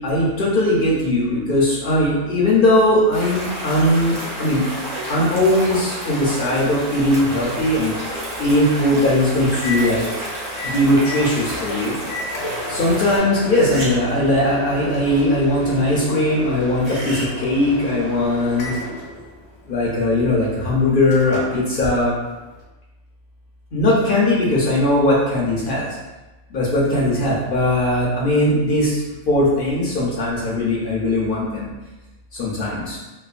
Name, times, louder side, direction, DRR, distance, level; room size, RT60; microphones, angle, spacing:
voice 1, 0.0-4.7 5.1-7.9 8.4-10.0 10.6-11.9 12.7-18.8 19.7-22.1 23.7-25.9 26.5-31.7 32.3-33.0, left 1 dB, 60° left, -5 dB, 0.6 m, -19 dB
sound 1, 3.1-13.2, right 1 dB, 40° right, 0.7 m, -30 dB
Microwave oven, 6.9-22.6, left 2 dB, 75° left, 1.0 m, -34 dB
sound 2, 7.3-7.4 7.6-8.6 9.3-10.7 13.4-14.2 16.8-17.3, right 1 dB, 60° right, 1.1 m, -34 dB
3.1 x 2.0 x 2.4 m, 1.1 s
omnidirectional pair, 1.3 m